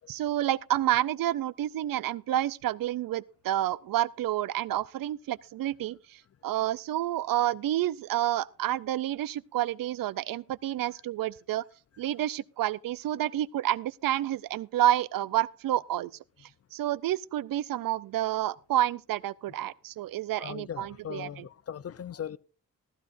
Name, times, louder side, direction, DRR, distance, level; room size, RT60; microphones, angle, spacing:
voice 1, 0.1-6.0 6.4-11.6 12.0-16.1 16.7-21.3, right 13 dB, 85° right, 0.5 m, -29 dB
voice 2, 20.4-22.4, left 9 dB, 45° left, 0.6 m, -39 dB
15.5 x 14.5 x 2.5 m
cardioid pair, 95°, 33 cm